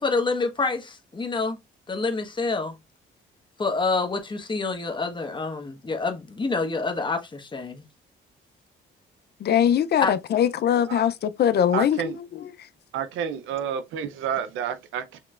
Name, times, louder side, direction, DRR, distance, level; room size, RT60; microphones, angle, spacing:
voice 1, 0.0-1.6 1.9-2.8 3.6-7.8 10.0-10.1, left 3 dB, 25° left, 1.2 m, -27 dB
voice 2, 9.4-12.5, left 9 dB, 55° left, 0.5 m, -22 dB
voice 3, 11.7-12.2 12.9-15.2, right 8 dB, 85° right, 0.6 m, -30 dB
6.5 x 3.1 x 2.4 m
cardioid pair, 90°, 20 cm